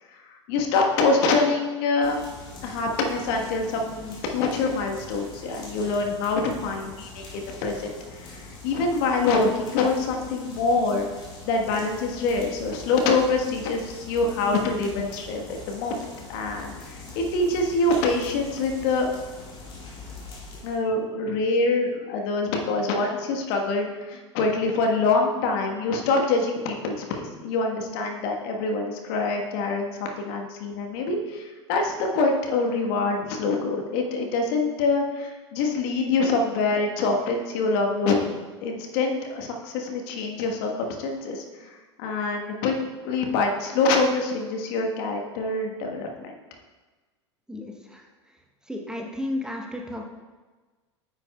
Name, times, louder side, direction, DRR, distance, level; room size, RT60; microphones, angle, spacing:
voice 1, 0.3-2.2 2.6-7.9 8.2-11.1 11.5-19.1 20.6-38.3 38.6-42.8 43.0-46.3, left 3 dB, 55° left, 2 dB, 1.3 m, -25 dB
sound 1, 2.0-20.8, left 3 dB, 30° left, 2.2 m, -43 dB
voice 2, 47.5-48.1 48.7-50.0, left 1 dB, 5° right, 1 dB, 0.9 m, -33 dB
9.8 x 7.3 x 2.3 m, 1.3 s
figure-of-eight pair, 80°, 15 cm